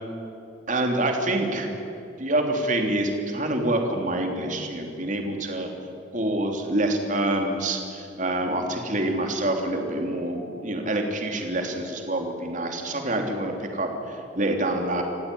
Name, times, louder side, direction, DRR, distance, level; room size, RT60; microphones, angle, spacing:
voice 1, 0.7-1.7 2.2-5.7 6.1-15.0, right 1 dB, 45° right, 3 dB, 3.3 m, -26 dB
27.5 x 16.0 x 10.0 m, 2.7 s
head